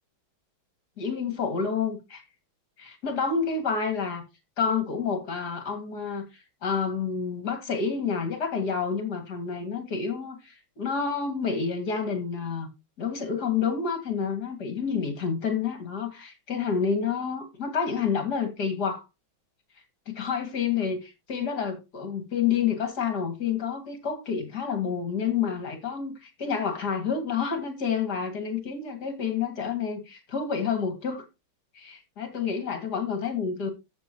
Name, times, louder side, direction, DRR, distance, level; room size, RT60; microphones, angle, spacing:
voice 1, 1.0-2.2 2.8-4.2 4.6-12.7 13.0-19.0 20.1-31.2 31.7-33.7, left 6 dB, 50° left, 2.8 m, -29 dB
13.5 x 7.2 x 3.1 m
omnidirectional pair, 2.3 m